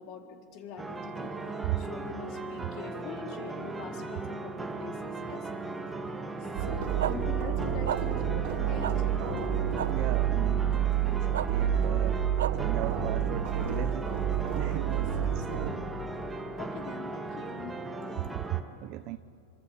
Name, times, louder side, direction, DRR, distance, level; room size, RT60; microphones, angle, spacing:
voice 1, 0.0-5.5 6.4-9.1 14.6-15.8 16.6-18.4, left 6 dB, 45° left, 4 dB, 3.7 m, -44 dB
sound 1, 0.8-18.6, right 3 dB, 10° right, 2.0 m, -38 dB
sound 2, 6.6-15.7, right 9 dB, 60° right, 3.3 m, -29 dB
sound 3, 7.0-7.1 7.8-8.0 8.8-8.9 9.8-9.9 11.3-11.5 12.4-12.5, right 11 dB, 85° right, 0.8 m, -30 dB
voice 2, 9.9-12.2 12.5-14.1 14.5-15.9 18.2-19.2, right 18 dB, 45° right, 13 dB, 0.6 m, -37 dB
25.5 x 24.5 x 8.7 m, 2.7 s
supercardioid pair, 135°, 0 cm